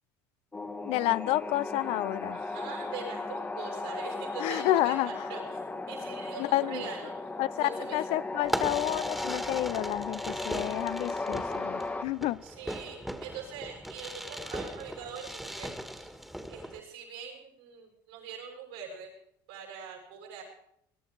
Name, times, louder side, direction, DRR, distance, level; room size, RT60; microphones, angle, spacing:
sound 1, 0.5-12.0, left 3 dB, 15° left, 1.2 m, -36 dB
voice 1, 0.8-2.4 4.4-5.2 6.4-6.9 7.4-12.4, left 16 dB, 70° left, 18 dB, 0.6 m, -30 dB
voice 2, 2.3-5.6 5.9-7.3 7.6-8.0 12.4-16.1 16.5-19.1 19.5-20.4, right 6 dB, 85° right, -1 dB, 7.2 m, -43 dB
Fireworks, 8.4-16.8, equal, ahead, 1.7 m, -38 dB
21.5 x 11.5 x 4.8 m, 0.74 s
supercardioid pair, 80°, 11 cm